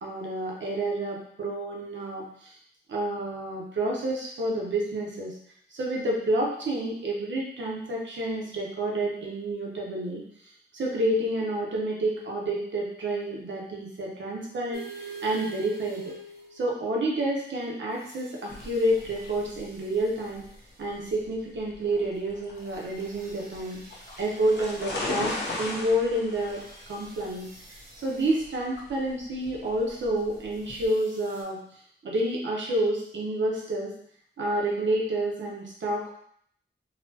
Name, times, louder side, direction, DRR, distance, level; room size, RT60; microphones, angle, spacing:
voice 1, 0.0-2.5 2.9-5.3 5.7-10.2 10.7-16.1 16.6-20.4 20.8-23.8 24.2-27.5 28.0-31.6 32.0-33.9 34.4-36.1, right 1 dB, 85° right, -2 dB, 0.8 m, -29 dB
sound 1, 14.7-16.8 18.0-20.4 22.6-25.7 26.4-28.3 30.7-31.4, right 4 dB, 55° right, 0.8 m, -46 dB
sound 2, 18.5-30.9, left 2 dB, 65° left, 0.7 m, -38 dB
4.0 x 2.1 x 2.8 m, 0.65 s
wide cardioid pair, 115°, 19 cm